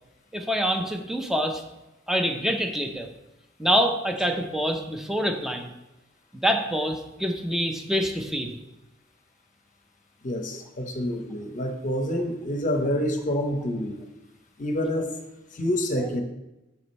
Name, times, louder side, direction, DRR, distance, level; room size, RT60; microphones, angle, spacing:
voice 1, 0.3-1.6 2.1-3.1 3.6-5.7 6.4-8.6 16.0-16.1, equal, ahead, 4 dB, 0.6 m, -26 dB
voice 2, 10.2-14.0 14.6-15.1 15.5-16.2, equal, 40° left, 5 dB, 0.8 m, -27 dB
6.8 x 4.9 x 4.1 m, 0.99 s
head